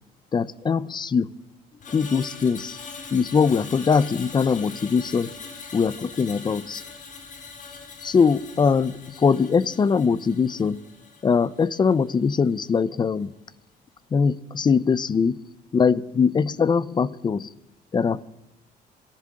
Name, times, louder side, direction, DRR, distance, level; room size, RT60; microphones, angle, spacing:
voice 1, 0.3-1.3 1.9-2.8 3.1-5.3 5.7-6.8 8.0-10.8 11.2-13.3 14.1-15.4 15.7-17.5 17.9-18.2, left 5 dB, 25° left, 21 dB, 0.5 m, -22 dB
Screech, 1.8-12.2 12.5-12.8, left 5 dB, 50° left, 2.5 m, -42 dB
13.0 x 11.5 x 7.5 m, 0.89 s
cardioid pair, 110°, 17 cm